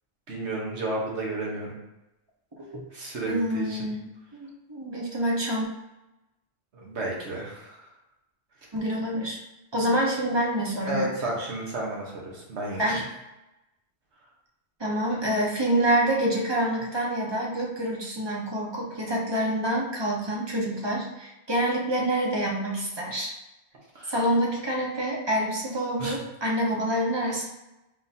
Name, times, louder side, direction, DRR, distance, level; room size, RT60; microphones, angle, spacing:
voice 1, 0.3-1.8 2.9-3.9 6.7-7.9 10.9-13.0 23.9-24.2 26.0-26.2, right 2 dB, 90° right, -3 dB, 1.4 m, -32 dB
voice 2, 3.3-4.0 4.4-5.7 8.7-9.4 9.7-11.1 12.8-13.0 14.8-23.3 24.1-27.4, right 1 dB, 30° right, -2 dB, 0.7 m, -27 dB
3.9 x 3.7 x 2.7 m, 0.95 s
omnidirectional pair, 1.1 m